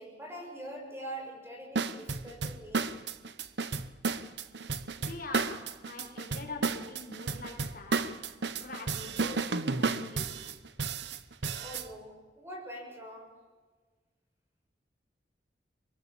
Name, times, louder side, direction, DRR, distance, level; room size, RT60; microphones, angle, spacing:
voice 1, 0.0-2.9 11.6-13.3, right 1 dB, 15° right, 1 dB, 7.0 m, -44 dB
sound 1, 1.7-11.9, right 4 dB, 80° right, 1.1 m, -33 dB
voice 2, 5.0-8.0 8.6-9.4 9.7-10.6, left 3 dB, 55° left, 3 dB, 4.6 m, -44 dB
24.5 x 23.0 x 7.2 m, 1.4 s
head